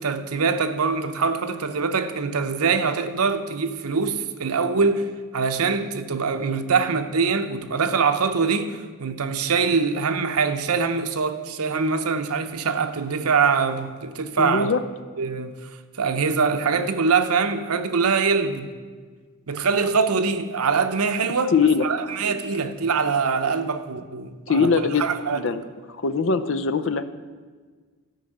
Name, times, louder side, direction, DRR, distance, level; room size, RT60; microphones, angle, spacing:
voice 1, 0.0-14.7 15.2-15.7 16.0-18.7 19.5-21.5 21.8-25.4, right 5 dB, 90° right, 0.8 m, -23 dB
voice 2, 14.4-14.8 21.5-21.8 24.5-25.0 25.3-25.6 25.9-27.0, left 5 dB, 60° left, 0.6 m, -21 dB
13.0 x 5.5 x 7.8 m
head